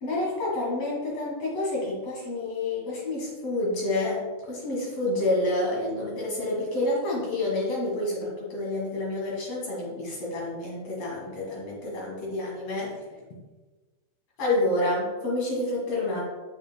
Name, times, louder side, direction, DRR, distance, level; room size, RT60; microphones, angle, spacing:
voice 1, 0.0-12.9 14.4-16.2, left 2 dB, 50° left, -4 dB, 2.0 m, -28 dB
8.9 x 6.9 x 2.2 m, 1.3 s
omnidirectional pair, 5.3 m